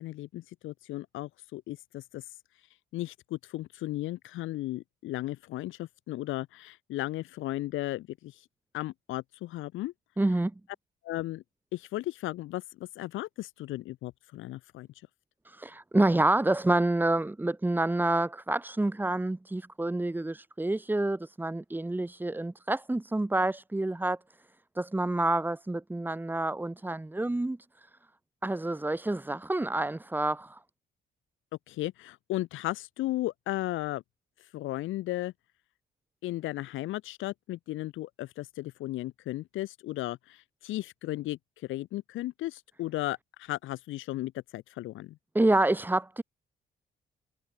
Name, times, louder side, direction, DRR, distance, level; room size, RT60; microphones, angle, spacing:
voice 1, 0.0-2.2 2.9-8.4 8.7-9.9 11.0-11.4 11.7-14.9 31.7-34.0 34.4-35.3 36.2-45.2, left 16 dB, 85° left, 0.9 m, -35 dB
voice 2, 10.2-10.5 15.4-24.2 24.7-27.9 28.4-30.6 45.3-46.2, right 2 dB, 10° right, 0.9 m, -28 dB
cardioid pair, 90°, 20 cm